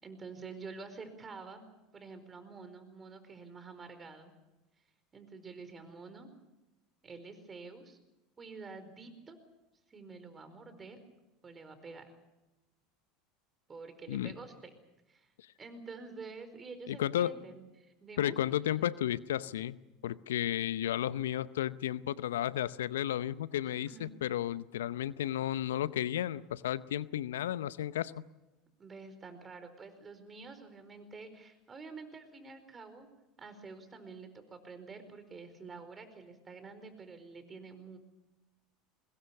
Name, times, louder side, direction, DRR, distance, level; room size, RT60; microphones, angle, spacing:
voice 1, 0.0-1.6 1.9-4.3 5.1-6.3 7.0-8.0 8.4-9.4 9.9-11.0 11.4-12.1 13.7-14.7 15.1-15.3 15.6-18.3 23.6-24.1 28.8-33.1 33.4-38.0, right 4 dB, 25° right, 10 dB, 4.7 m, -48 dB
voice 2, 16.9-17.4 18.2-19.8 20.0-28.2, left 12 dB, 80° left, 17 dB, 0.7 m, -33 dB
23.0 x 21.0 x 7.2 m, 1.0 s
hypercardioid pair, 80°, 0 cm